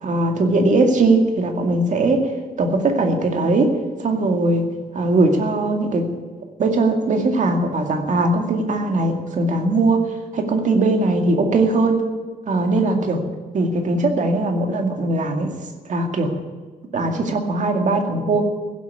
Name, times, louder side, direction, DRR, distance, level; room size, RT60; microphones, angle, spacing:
voice 1, 0.0-2.2 2.6-3.7 4.0-4.6 4.9-6.1 6.6-10.0 10.3-12.0 12.5-13.2 13.5-15.5 15.9-16.3 16.9-18.4, right 2 dB, 50° right, 4 dB, 2.2 m, -19 dB
16.0 x 8.2 x 9.6 m, 1.4 s
wide cardioid pair, 165°, 16 cm